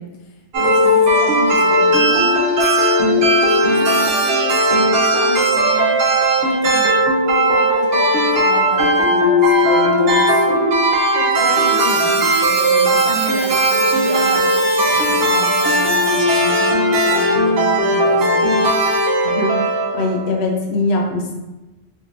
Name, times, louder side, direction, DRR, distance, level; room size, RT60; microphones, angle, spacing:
voice 1, 0.0-2.5 3.0-6.0 6.4-7.0 7.2-10.6 10.9-14.5 14.7-18.6, left 2 dB, 40° left, -1 dB, 0.5 m, -31 dB
sound 1, 0.5-20.4, right 1 dB, 75° right, 0.8 m, -16 dB
voice 2, 19.2-21.3, left 2 dB, 80° left, 0 dB, 0.9 m, -22 dB
3.7 x 2.8 x 2.5 m, 1.1 s
omnidirectional pair, 1.1 m